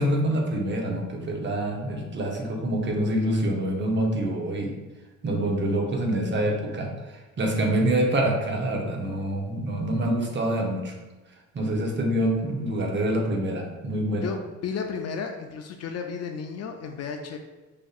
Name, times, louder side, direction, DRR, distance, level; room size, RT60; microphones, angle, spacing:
voice 1, 0.0-4.7 5.2-11.0 11.5-14.3, right 1 dB, 40° right, 1 dB, 0.8 m, -26 dB
voice 2, 14.2-17.4, left 6 dB, 55° left, 4 dB, 0.4 m, -33 dB
5.0 x 2.6 x 2.4 m, 1.2 s
cardioid pair, 90°, 30 cm